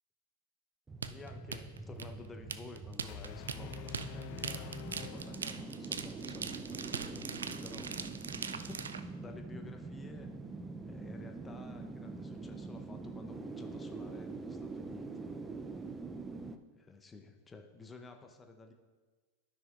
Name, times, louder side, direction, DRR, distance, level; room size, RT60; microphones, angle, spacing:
sound 1, 0.9-16.6, right 3 dB, 15° right, 0.5 m, -44 dB
voice 1, 1.0-8.9 9.2-10.3 10.8-15.3 16.9-18.7, left 3 dB, 15° left, 4 dB, 0.8 m, -52 dB
sound 2, 1.0-9.0, right 6 dB, 85° right, 0.3 m, -41 dB
sound 3, 3.1-6.1, left 16 dB, 55° left, 0.4 m, -48 dB
13.0 x 6.0 x 2.5 m, 1.3 s
hypercardioid pair, 95°, 0 cm